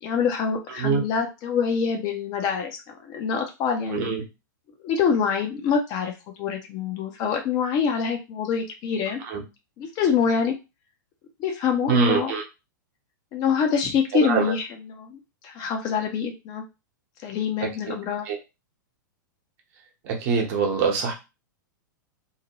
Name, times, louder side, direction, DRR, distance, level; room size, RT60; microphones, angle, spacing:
voice 1, 0.0-4.1 4.8-6.1 6.4-9.2 9.8-10.6 11.4-12.3 13.3-16.6 17.2-18.3, left 6 dB, 40° left, 3 dB, 0.7 m, -25 dB
voice 2, 11.9-12.4 14.1-14.4 18.3-18.4 20.0-21.1, right 6 dB, 50° right, 1 dB, 1.0 m, -23 dB
2.7 x 2.2 x 2.9 m, 0.26 s
hypercardioid pair, 110°, 11 cm